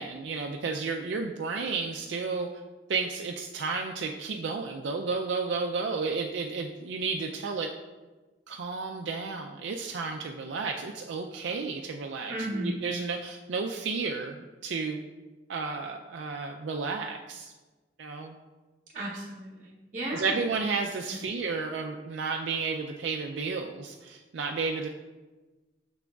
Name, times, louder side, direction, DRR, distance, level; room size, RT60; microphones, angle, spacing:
voice 1, 0.0-2.5 2.9-7.7 8.5-15.0 15.5-17.5 18.0-18.3 20.1-24.9, right 4 dB, 70° right, 2 dB, 0.4 m, -32 dB
voice 2, 12.3-12.9 18.9-20.4 21.1-21.2, right 1 dB, 40° right, -6 dB, 0.8 m, -34 dB
6.7 x 6.1 x 2.3 m, 1.2 s
head